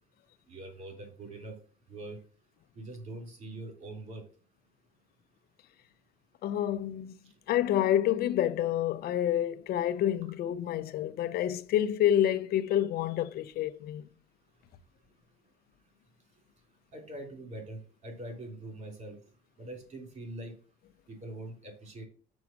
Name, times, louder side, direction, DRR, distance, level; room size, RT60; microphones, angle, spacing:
voice 1, 0.5-1.6 1.9-2.2 2.7-4.2 16.9-19.2 19.6-20.5 21.1-22.1, right 2 dB, 45° right, 3.3 m, -43 dB
voice 2, 6.4-7.1 7.5-14.0, left 11 dB, 65° left, 0.6 m, -28 dB
6.2 x 4.8 x 5.9 m
cardioid pair, 110°, 17 cm